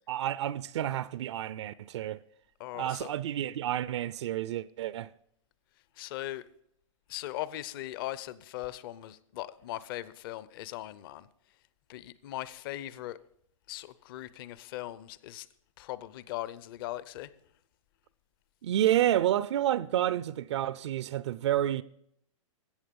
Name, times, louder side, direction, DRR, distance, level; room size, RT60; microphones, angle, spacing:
voice 1, 0.1-2.2 2.7-5.1 18.6-21.8, right 12 dB, 55° right, 0.5 m, -29 dB
voice 2, 2.6-3.1 6.0-6.5 7.1-11.3 11.9-13.2 13.7-15.5 15.8-17.3, left 15 dB, 40° left, 0.6 m, -39 dB
14.5 x 8.2 x 5.3 m
hypercardioid pair, 145°, 17 cm